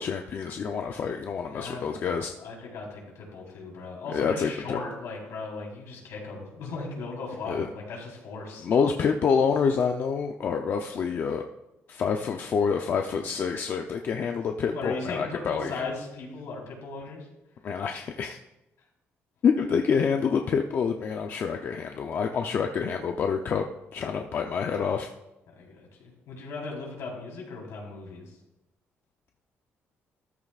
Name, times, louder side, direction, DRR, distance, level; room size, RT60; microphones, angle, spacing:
voice 1, 0.0-2.3 4.1-4.8 7.5-7.7 8.6-11.4 11.9-15.8 17.6-18.4 19.4-25.1, left 6 dB, 45° left, 4 dB, 0.6 m, -27 dB
voice 2, 1.5-8.7 14.7-17.3 25.6-28.3, left 3 dB, 75° left, -1 dB, 4.1 m, -37 dB
13.5 x 13.0 x 2.5 m, 0.95 s
cardioid pair, 150°, 5 cm